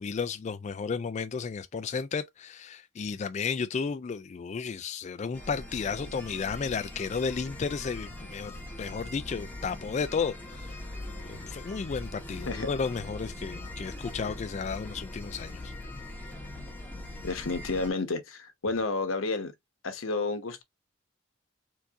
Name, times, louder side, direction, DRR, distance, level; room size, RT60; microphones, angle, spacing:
voice 1, 0.0-8.5 8.8-10.8 11.3-15.7, left 5 dB, 35° left, 0.3 m, -33 dB
sound 1, 5.3-17.9, left 1 dB, 10° left, 1.3 m, -41 dB
voice 2, 17.2-19.5 19.8-20.6, left 3 dB, 90° left, 1.1 m, -31 dB
4.5 x 2.7 x 3.6 m
head